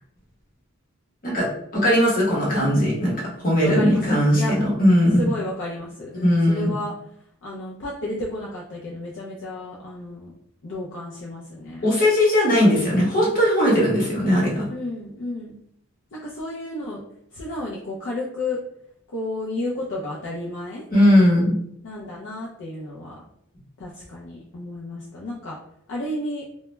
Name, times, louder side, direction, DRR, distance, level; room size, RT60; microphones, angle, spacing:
voice 1, 1.7-5.2 6.2-6.7 11.8-14.7 20.9-21.6, equal, 40° left, -5 dB, 0.9 m, -19 dB
voice 2, 3.6-4.6 5.2-6.9 7.4-10.3 10.6-11.9 14.7-15.6 16.2-17.0 17.3-18.6 19.1-20.8 21.8-23.2 23.8-25.6 25.9-26.4, left 2 dB, 55° left, -4 dB, 0.4 m, -32 dB
2.2 x 2.0 x 3.1 m, 0.72 s
head